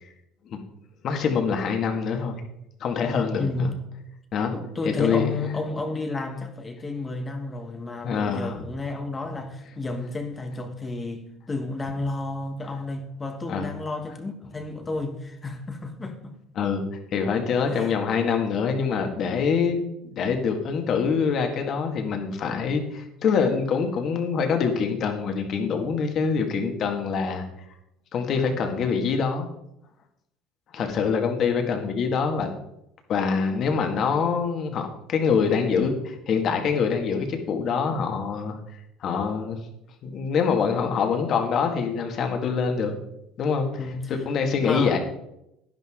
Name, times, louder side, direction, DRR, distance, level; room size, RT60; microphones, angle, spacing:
voice 1, 1.0-2.4 2.8-3.7 4.3-4.5 5.0-5.3 8.0-8.6 13.5-13.7 16.6-16.8 17.1-19.8 20.2-27.4 28.1-29.5 30.7-32.5 33.1-38.6 39.0-39.6 40.0-42.9 43.4-43.9 44.3-45.0, left 5 dB, 50° left, 2.0 m, -25 dB
voice 2, 3.4-3.7 4.5-16.3 17.7-17.9 43.8-44.1 44.6-45.0, left 3 dB, 20° left, 1.3 m, -31 dB
11.0 x 11.0 x 3.8 m
cardioid pair, 120°, 0 cm